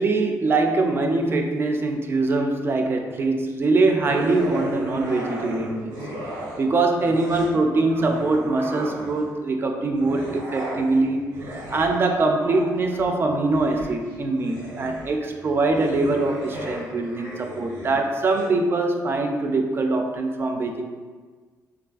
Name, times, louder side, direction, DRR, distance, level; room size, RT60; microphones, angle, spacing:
voice 1, 0.0-6.0 6.6-20.8, right 3 dB, 35° right, 4 dB, 0.3 m, -23 dB
sound 1, 4.0-6.7 7.0-9.4 9.9-18.5, right 1 dB, 85° right, 0.7 m, -36 dB
3.2 x 2.4 x 2.3 m, 1.5 s
cardioid pair, 85°, 7 cm